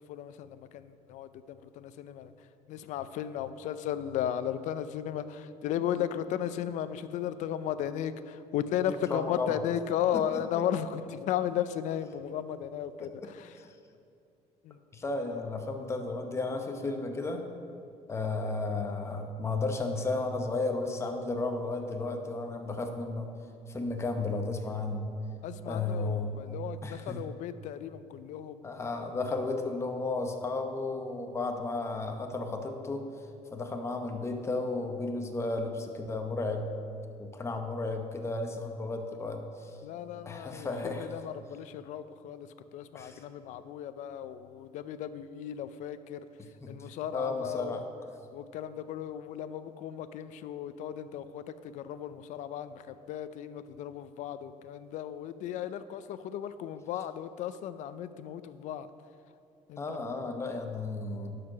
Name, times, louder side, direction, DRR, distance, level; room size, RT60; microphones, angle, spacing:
voice 1, 0.1-13.7 14.6-14.8 25.4-28.9 29.3-29.4 39.8-46.3 46.7-47.8 48.3-58.9 59.7-60.0, left 10 dB, 75° left, 13 dB, 0.5 m, -35 dB
voice 2, 9.1-9.5 10.1-10.4 14.9-17.4 18.1-23.3 23.7-25.1 25.7-26.4 26.8-27.2 28.6-33.0 33.5-36.7 37.2-39.8 40.3-41.1 42.9-43.2 46.6-46.8 47.1-47.8 59.8-61.4, left 3 dB, 20° left, 4 dB, 0.8 m, -33 dB
11.0 x 4.6 x 6.1 m, 2.5 s
cardioid pair, 135°, 13 cm